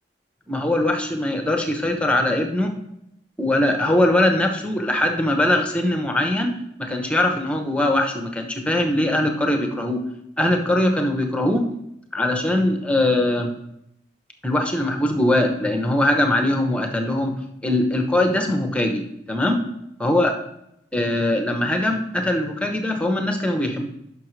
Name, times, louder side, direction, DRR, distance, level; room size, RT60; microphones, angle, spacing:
voice 1, 0.5-2.7 3.4-10.1 10.4-11.6 12.1-13.5 14.4-17.4 17.6-19.6 20.0-20.3 20.9-23.9, left 1 dB, 5° left, 4 dB, 0.8 m, -21 dB
11.0 x 5.8 x 3.2 m, 0.79 s
head